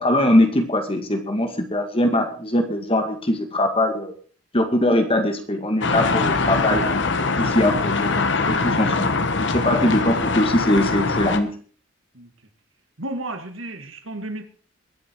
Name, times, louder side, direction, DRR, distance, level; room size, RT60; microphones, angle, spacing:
voice 1, 0.0-4.1 4.5-8.4 8.6-9.1 9.5-11.5, left 1 dB, 30° left, 5 dB, 2.1 m, -21 dB
sound 1, 5.8-11.4, left 3 dB, 60° left, 1.3 m, -22 dB
voice 2, 13.0-14.4, right 2 dB, 80° right, 6 dB, 2.2 m, -32 dB
22.5 x 7.9 x 4.8 m, 0.42 s
head